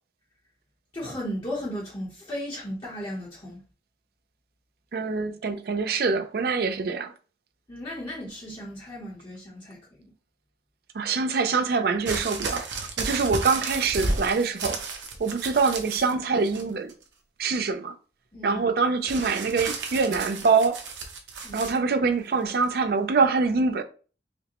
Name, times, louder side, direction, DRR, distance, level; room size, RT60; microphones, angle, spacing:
voice 1, 0.9-3.6 7.7-10.1 18.3-18.6 21.4-21.7, equal, 25° left, 0.8 m, -35 dB
voice 2, 4.9-7.1 10.9-14.8 15.2-16.9 17.4-17.9 18.4-20.8 21.5-23.8, right 4 dB, 55° right, 0.4 m, -24 dB
sound 1, 12.0-16.1 16.4-17.0 19.1-21.8 22.6-22.7, right 3 dB, 80° right, 0.7 m, -33 dB
4.9 x 2.1 x 2.9 m
head